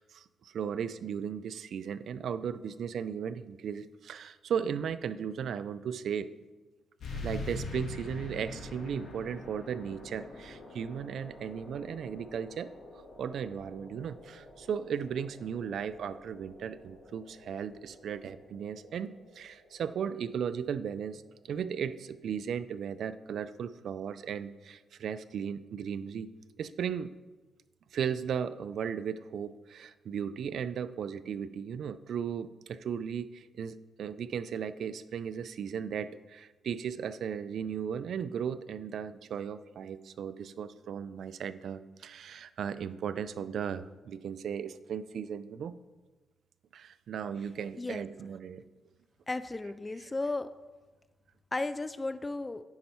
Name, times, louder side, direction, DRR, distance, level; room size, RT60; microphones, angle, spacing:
voice 1, 0.0-6.3 7.1-12.7 13.2-26.3 26.6-27.1 27.9-45.8 46.7-48.6 50.0-50.1, right 7 dB, 70° right, 14 dB, 0.4 m, -36 dB
sound 1, 7.0-22.1, left 2 dB, 70° left, 2.2 m, -46 dB
voice 2, 49.3-50.5 51.5-52.6, left 2 dB, 20° left, 12 dB, 0.3 m, -34 dB
9.4 x 5.5 x 4.4 m, 1.2 s
cardioid pair, 105°, 0 cm